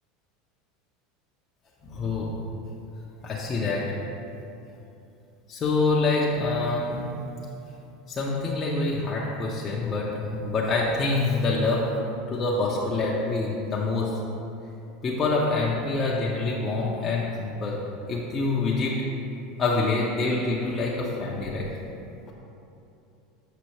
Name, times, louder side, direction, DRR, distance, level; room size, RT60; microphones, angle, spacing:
voice 1, 1.8-2.3 3.2-4.0 5.5-7.2 8.1-12.0 12.3-14.2 15.0-17.8 18.1-19.0 19.6-21.7, left 3 dB, 30° left, -5 dB, 0.9 m, -26 dB
6.9 x 6.0 x 3.1 m, 2.7 s
hypercardioid pair, 80°, 0 cm